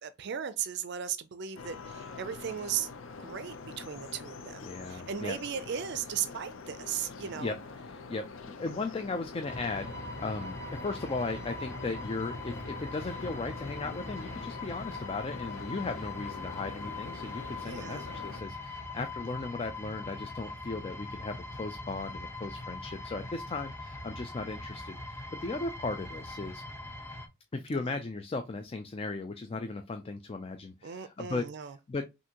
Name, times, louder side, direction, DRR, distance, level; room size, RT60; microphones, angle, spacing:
voice 1, 0.0-2.9 3.2-7.6 17.6-18.1 27.8-27.9 30.8-31.7, right 8 dB, 60° right, 0.4 m, -37 dB
sound 1, 1.6-18.4, left 4 dB, 80° left, 0.6 m, -45 dB
voice 2, 4.6-5.4 7.2-7.6 7.8-26.6 27.5-31.5 31.9-32.1, left 3 dB, 30° left, 0.4 m, -37 dB
sound 2, 9.5-27.3, left 2 dB, 15° left, 0.9 m, -41 dB
5.9 x 2.6 x 2.8 m
head